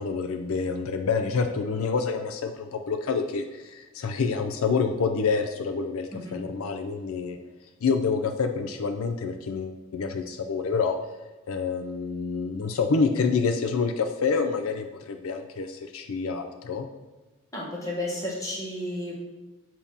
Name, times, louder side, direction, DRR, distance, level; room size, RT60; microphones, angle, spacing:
voice 1, 0.0-7.4 7.8-11.0 11.5-16.9, left 5 dB, 70° left, 6 dB, 0.4 m, -27 dB
voice 2, 6.1-6.4 17.5-19.1, left 1 dB, 15° left, -4 dB, 1.2 m, -32 dB
7.0 x 2.9 x 5.3 m, 1.2 s
head